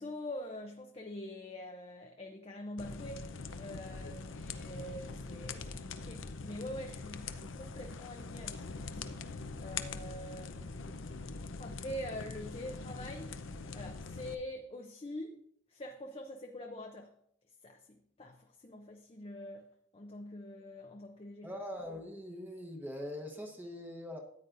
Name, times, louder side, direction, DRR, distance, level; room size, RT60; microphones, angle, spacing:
voice 1, 0.0-3.3 3.6-9.2 9.6-10.8 11.6-13.4 13.7-15.4 15.7-17.1 17.6-19.7 19.9-21.5, left 1 dB, 30° left, 3 dB, 0.6 m, -45 dB
sound 1, 2.8-14.3, left 4 dB, 75° left, 0.7 m, -43 dB
voice 2, 21.4-24.2, left 1 dB, 10° right, 1 dB, 1.0 m, -42 dB
13.5 x 9.5 x 2.6 m, 0.70 s
head